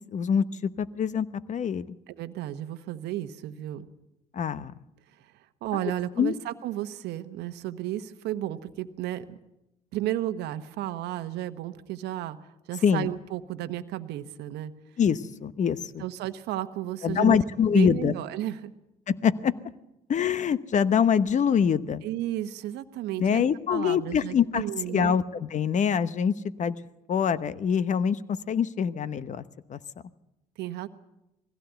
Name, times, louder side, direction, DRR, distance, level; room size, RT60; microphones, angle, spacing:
voice 1, 0.1-1.9 4.3-4.7 6.2-6.3 12.8-13.1 15.0-16.0 17.0-18.1 19.1-19.5 20.1-22.0 23.2-24.6 24.9-26.3 26.6-26.7 27.1-29.4 29.7-29.8, left 7 dB, 40° left, 15 dB, 1.0 m, -24 dB
voice 2, 2.1-3.9 5.2-5.3 5.6-9.4 9.9-12.4 12.7-14.7 16.0-17.4 17.7-18.7 22.0-25.2 30.6-30.9, right 13 dB, 70° right, 10 dB, 1.1 m, -33 dB
20.0 x 16.0 x 8.1 m, 0.94 s
hypercardioid pair, 70°, 18 cm